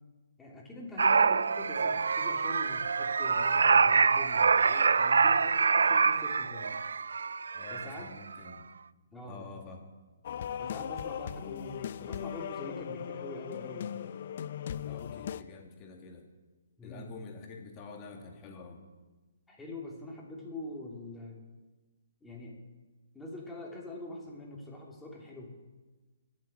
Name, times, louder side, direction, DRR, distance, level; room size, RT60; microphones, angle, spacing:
voice 1, 0.4-6.7 7.7-8.1 9.1-9.5 10.6-14.0 16.8-17.1 19.5-21.4 22.2-22.6 23.1-25.5, left 1 dB, 5° left, -2 dB, 2.9 m, -44 dB
sound 1, 1.0-8.1 8.3-8.5, right 5 dB, 85° right, 0.4 m, -25 dB
voice 2, 7.5-8.7 9.2-9.9 14.8-16.3 16.8-18.8, left 4 dB, 25° left, 2 dB, 2.4 m, -47 dB
sound 2, 10.2-15.4, left 9 dB, 50° left, 0.6 m, -38 dB
21.0 x 7.6 x 8.8 m, 1.2 s
hypercardioid pair, 160°, 0 cm